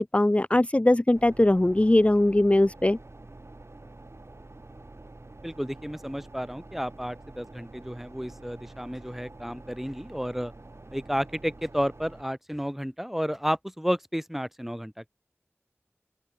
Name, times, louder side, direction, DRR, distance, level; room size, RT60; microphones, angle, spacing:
voice 1, 0.0-3.0, left 1 dB, 30° left, 0.5 m, -21 dB
sound 1, 1.1-12.2, right 2 dB, 75° right, 4.0 m, -47 dB
voice 2, 5.4-10.5 10.9-15.1, equal, 5° right, 2.2 m, -32 dB
open air
wide cardioid pair, 40°, 5 cm